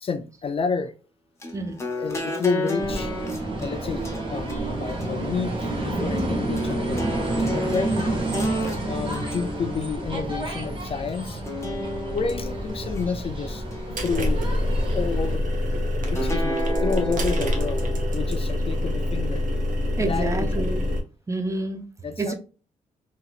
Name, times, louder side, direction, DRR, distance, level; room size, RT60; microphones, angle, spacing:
voice 1, 0.0-0.9 2.0-11.4 12.0-14.4 14.9-15.5 16.1-19.5 20.0-20.7 22.0-22.3, left 5 dB, 45° left, 0.4 m, -30 dB
sound 1, 1.4-10.9 11.5-13.0 13.5-14.6 16.1-18.1, equal, 20° left, 0.8 m, -33 dB
sound 2, 2.8-15.4, right 2 dB, 40° right, 1.1 m, -29 dB
sound 3, 12.1-21.0, left 1 dB, 70° right, 0.9 m, -26 dB
voice 2, 20.0-20.8 21.3-21.9 22.2-22.3, right 2 dB, 20° right, 0.5 m, -28 dB
2.9 x 2.8 x 2.4 m
cardioid pair, 90°, 14 cm